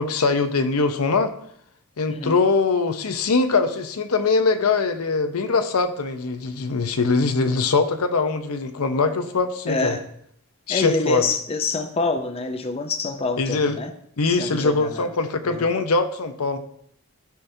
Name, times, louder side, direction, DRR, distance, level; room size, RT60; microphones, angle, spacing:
voice 1, 0.0-1.3 2.0-10.0 10.7-11.2 13.4-13.8 14.2-16.6, left 4 dB, 85° left, 9 dB, 0.7 m, -22 dB
voice 2, 2.1-2.4 9.7-10.0 10.7-13.9 14.3-15.1 15.4-15.6, left 3 dB, 25° left, 7 dB, 0.5 m, -26 dB
13.0 x 5.8 x 2.7 m, 0.70 s
head